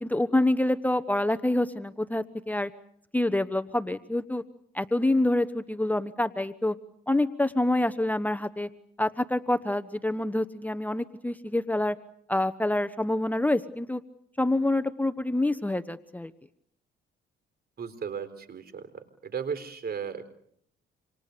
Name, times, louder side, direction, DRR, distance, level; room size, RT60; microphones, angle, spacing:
voice 1, 0.0-2.7 3.1-4.4 4.7-6.7 7.1-8.7 9.0-12.0 12.3-14.0 14.4-16.3, left 1 dB, 10° left, 11 dB, 1.1 m, -26 dB
voice 2, 17.8-18.9 19.2-20.3, right 7 dB, 50° right, 12 dB, 4.1 m, -35 dB
28.0 x 27.5 x 6.9 m, 0.71 s
cardioid pair, 90°, 20 cm